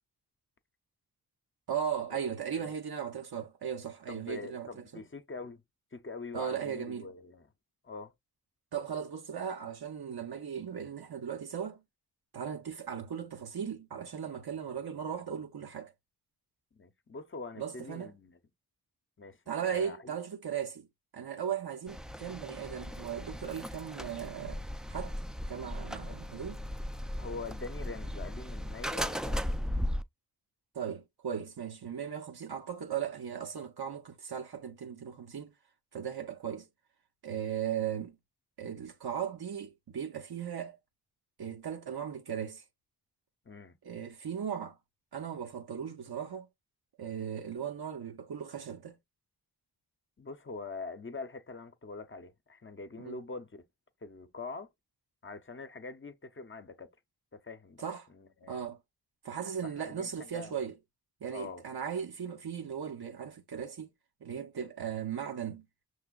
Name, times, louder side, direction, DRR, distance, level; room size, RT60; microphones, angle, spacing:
voice 1, 1.7-5.0 6.3-7.1 8.7-11.8 12.3-15.9 17.6-18.1 19.5-20.9 21.1-24.6 24.9-25.1 25.5-26.6 30.7-35.5 35.9-36.7 37.2-38.2 38.6-40.8 41.4-42.6 43.8-44.8 45.1-46.5 47.0-49.0 53.0-53.1 57.8-58.1 58.5-58.8 59.2-60.7 61.2-63.9 64.2-65.7, right 8 dB, 75° right, 0.8 m, -37 dB
voice 2, 4.1-5.6 5.9-7.5 7.8-8.1 16.7-18.4 19.2-19.4 19.7-20.1 26.1-26.2 27.2-29.8 43.4-43.8 50.2-53.7 54.0-54.7 55.2-56.9 57.3-57.8 58.1-58.7 59.6-60.5 61.3-61.6, left 3 dB, 30° left, 0.6 m, -44 dB
sound 1, 21.9-30.0, equal, ahead, 0.3 m, -37 dB
5.9 x 3.3 x 2.3 m
wide cardioid pair, 65°, 38 cm